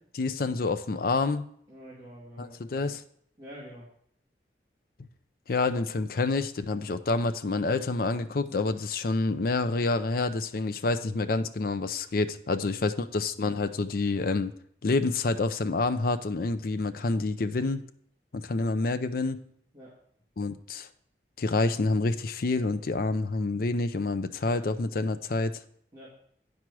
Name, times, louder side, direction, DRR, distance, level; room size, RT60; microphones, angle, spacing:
voice 1, 0.1-1.4 2.4-3.0 5.0-5.1 5.5-14.5 14.8-17.9 18.3-19.5 20.4-20.9 21.4-25.6, left 3 dB, 55° left, 11 dB, 0.5 m, -28 dB
voice 2, 1.7-2.7 3.4-3.9 12.9-13.0 19.7-19.9 25.9-26.2, equal, 20° right, -7 dB, 2.1 m, -46 dB
8.9 x 6.1 x 4.7 m, 0.66 s
head